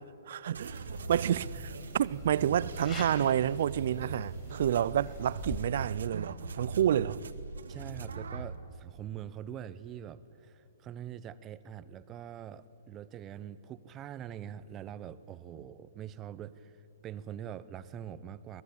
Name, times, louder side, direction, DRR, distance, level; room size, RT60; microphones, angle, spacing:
voice 1, 0.3-7.2, right 10 dB, 60° right, 0.5 m, -29 dB
sound 1, 0.5-8.6, right 4 dB, 80° right, 1.4 m, -41 dB
sound 2, 0.7-5.7, left 4 dB, 25° left, 5.0 m, -47 dB
voice 2, 7.7-16.7 17.0-18.6, right 10 dB, 25° right, 0.9 m, -44 dB
23.0 x 19.0 x 8.5 m
hypercardioid pair, 125°, 0 cm